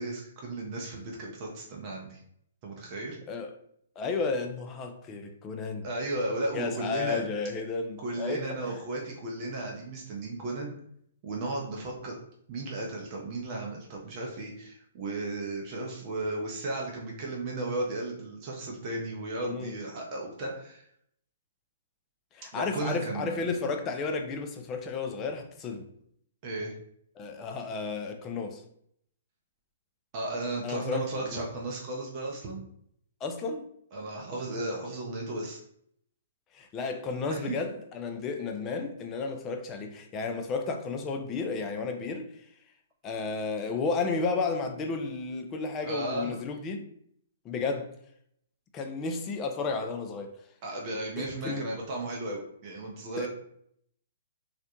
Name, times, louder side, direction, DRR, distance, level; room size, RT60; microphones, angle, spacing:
voice 1, 0.0-2.2 2.6-3.2 5.8-7.2 8.0-10.7 11.2-12.2 12.5-20.8 22.5-23.4 26.4-26.7 30.1-32.6 33.9-35.6 37.3-37.6 45.8-46.4 50.6-53.3, right 2 dB, 40° right, 0.6 m, -35 dB
voice 2, 4.0-5.9 6.5-8.8 19.4-19.7 22.3-25.9 27.2-28.6 30.6-31.5 33.2-33.7 36.5-42.4 43.0-46.9 47.4-47.9 48.7-50.4 51.2-51.7 53.2-53.3, left 4 dB, 25° left, 0.4 m, -33 dB
2.4 x 2.1 x 2.8 m
figure-of-eight pair, 125°, 0 cm